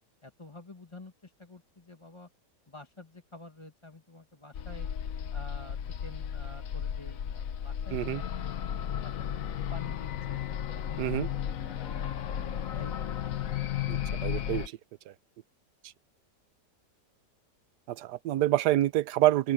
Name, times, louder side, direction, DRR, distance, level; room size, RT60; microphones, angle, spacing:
voice 1, 0.2-2.3 2.7-4.9 5.3-8.3 8.9-9.3 9.7-10.4 10.9-11.3 11.7-13.2, left 2 dB, 15° left, 1.9 m, -49 dB
sound 1, 4.5-14.7, left 9 dB, 60° left, 1.1 m, -34 dB
voice 2, 7.9-8.2 11.0-11.3 13.9-14.8 15.1-15.2 17.9-19.5, right 14 dB, 75° right, 1.2 m, -27 dB
open air
omnidirectional pair, 1.8 m